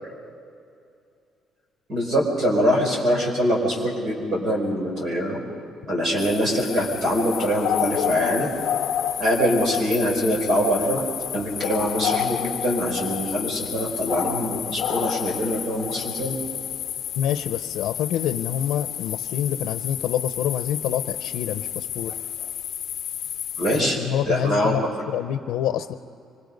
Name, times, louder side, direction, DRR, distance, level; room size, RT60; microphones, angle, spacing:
voice 1, 1.9-5.4 5.9-8.5 9.2-11.0 11.3-16.3 23.6-24.0 24.3-24.8, equal, 40° right, -1 dB, 5.0 m, -23 dB
sound 1, 6.2-23.8, left 10 dB, 55° left, 0.8 m, -30 dB
voice 2, 17.2-22.1 23.7-25.9, left 10 dB, 90° left, 10 dB, 0.7 m, -27 dB
25.0 x 23.0 x 5.4 m, 2.6 s
cardioid pair, 175°, 0 cm